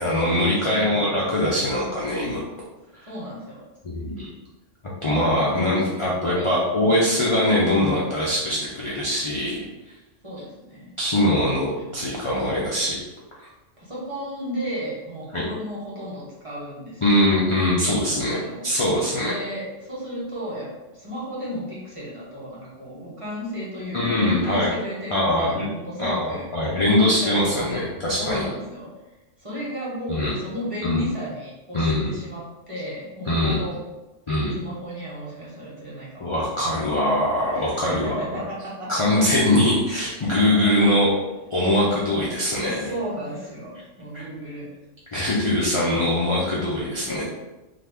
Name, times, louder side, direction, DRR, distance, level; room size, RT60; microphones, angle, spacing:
voice 1, 0.0-2.4 3.8-4.3 5.0-9.6 11.0-13.0 15.3-15.4 17.0-19.3 23.9-24.7 25.1-25.7 26.0-28.5 30.1-30.3 30.8-31.0 31.7-32.1 33.3-33.6 34.3-34.6 36.2-38.4 38.9-41.1 41.5-42.8 45.1-47.2, left 1 dB, 50° left, -6 dB, 0.3 m, -22 dB
voice 2, 0.7-1.5 3.1-3.6 5.4-7.1 7.7-8.6 10.2-12.2 13.8-17.5 17.8-18.7 19.2-26.5 27.0-27.9 28.2-28.9 29.4-33.8 34.6-36.4 37.4-39.6 40.4-40.9 42.1-42.3 42.5-44.7 47.1-47.2, equal, 30° right, -7 dB, 0.8 m, -35 dB
2.7 x 2.5 x 3.4 m, 1.1 s
omnidirectional pair, 1.3 m